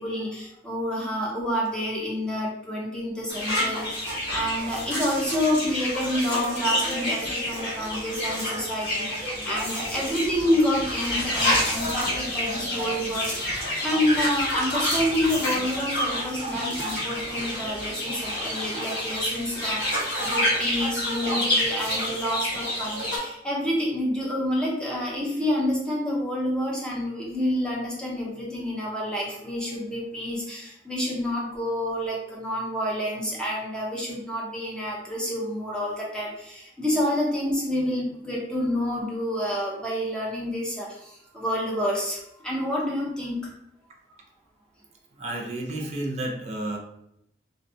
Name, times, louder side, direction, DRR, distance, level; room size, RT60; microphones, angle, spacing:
voice 1, 0.0-43.5, equal, 5° left, -4 dB, 0.6 m, -28 dB
sound 1, 3.3-23.2, left 1 dB, 70° left, 1.5 m, -28 dB
voice 2, 45.1-46.8, right 1 dB, 40° right, 1 dB, 0.4 m, -31 dB
2.5 x 2.1 x 2.7 m, 0.78 s
head